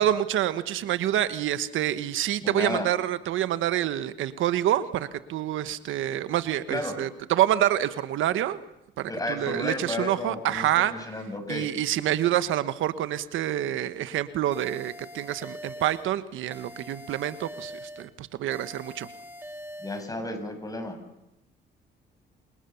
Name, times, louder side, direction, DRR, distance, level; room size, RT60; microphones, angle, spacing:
voice 1, 0.0-8.6 9.0-10.9 11.5-19.1, right 12 dB, 85° right, 13 dB, 1.3 m, -27 dB
voice 2, 2.4-2.9 6.7-7.0 9.1-11.7 19.8-21.0, left 2 dB, 20° left, 7 dB, 6.7 m, -33 dB
sound 1, 14.5-16.1 16.5-18.1 18.5-20.1, equal, 10° right, 3.6 m, -43 dB
28.0 x 27.5 x 7.1 m, 0.87 s
cardioid pair, 90°, 20 cm